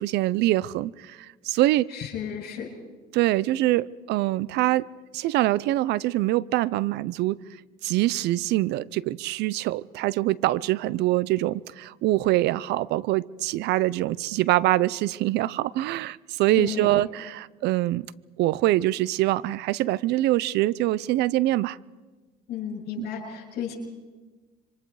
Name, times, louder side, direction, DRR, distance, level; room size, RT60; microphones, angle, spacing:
voice 1, 0.0-1.9 3.1-4.9 5.1-7.4 7.8-18.1 18.4-21.8 23.0-23.1, right 16 dB, 85° right, 21 dB, 0.6 m, -24 dB
voice 2, 1.9-2.7 16.5-17.1 22.5-23.7, left 8 dB, 70° left, -2 dB, 6.9 m, -33 dB
27.0 x 25.0 x 4.9 m, 1.3 s
cardioid pair, 110°, 17 cm